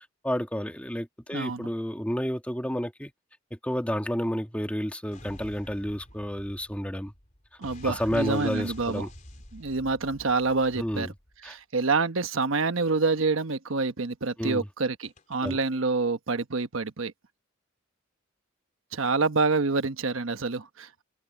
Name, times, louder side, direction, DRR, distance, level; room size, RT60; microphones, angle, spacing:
voice 1, 0.2-3.1 3.6-7.1 7.8-9.1 10.8-11.1 11.4-11.6 14.4-14.7 15.4-15.6, equal, 5° left, 2.0 m, -30 dB
voice 2, 1.3-1.7 7.6-9.1 9.5-11.1 11.4-17.1 18.9-21.0, right 3 dB, 85° right, 1.1 m, -27 dB
sound 1, 5.1-11.5 15.0-15.7, left 1 dB, 40° left, 4.1 m, -48 dB
head